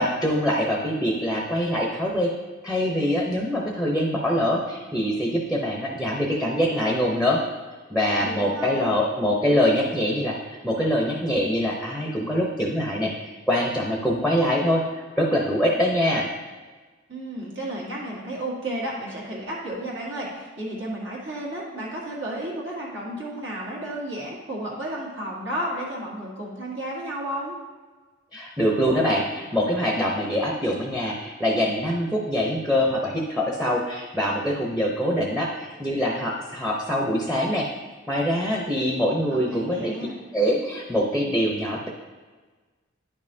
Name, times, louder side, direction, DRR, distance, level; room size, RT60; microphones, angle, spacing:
voice 1, 0.0-2.3 2.6-7.4 7.9-14.8 15.2-16.3 28.3-37.7 38.1-39.9 40.3-41.9, equal, 5° right, -2 dB, 0.7 m, -24 dB
voice 2, 8.2-9.0 17.1-27.6 39.3-40.2, right 1 dB, 65° right, -4 dB, 1.8 m, -32 dB
9.9 x 5.4 x 2.7 m, 1.3 s
head